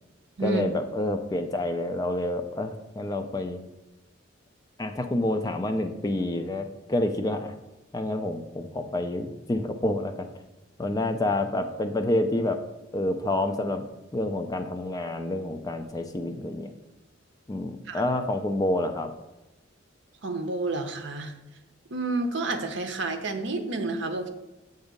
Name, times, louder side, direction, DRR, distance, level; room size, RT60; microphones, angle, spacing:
voice 1, 0.4-3.6 4.8-7.5 7.9-10.3 10.8-12.6 12.9-13.8 14.1-16.7 17.5-19.1, left 1 dB, 20° left, 7 dB, 0.3 m, -28 dB
voice 2, 20.2-21.3 21.9-24.3, right 2 dB, 65° right, 6 dB, 0.7 m, -29 dB
7.9 x 2.7 x 5.1 m, 1.0 s
head